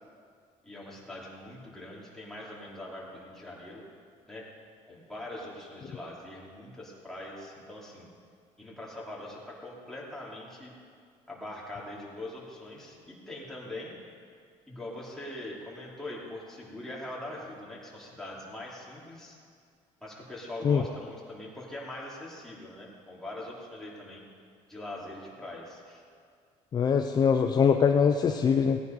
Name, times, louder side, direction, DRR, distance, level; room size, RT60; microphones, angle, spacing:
voice 1, 0.6-3.8 4.3-4.5 4.9-8.1 8.6-10.7 11.3-13.9 14.7-19.4 20.0-24.2 24.7-26.0, left 1 dB, 5° left, -5 dB, 3.1 m, -42 dB
voice 2, 26.7-28.8, left 6 dB, 35° left, 6 dB, 0.5 m, -23 dB
17.5 x 9.5 x 5.4 m, 2.2 s
cardioid pair, 130°, 13 cm